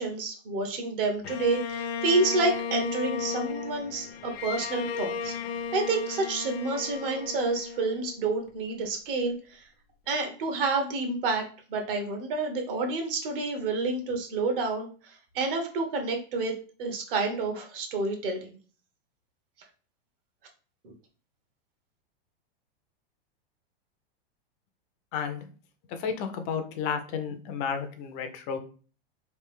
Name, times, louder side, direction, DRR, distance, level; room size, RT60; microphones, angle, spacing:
voice 1, 0.0-5.3 5.7-9.6 10.1-18.5 20.8-20.9, right 3 dB, 60° right, 4 dB, 1.1 m, -29 dB
Bowed string instrument, 1.2-8.5, left 6 dB, 80° left, 0.6 m, -35 dB
voice 2, 25.1-25.5 26.0-28.6, left 6 dB, 25° left, 8 dB, 0.4 m, -32 dB
3.2 x 2.5 x 3.5 m, 0.39 s
supercardioid pair, 150°, 31 cm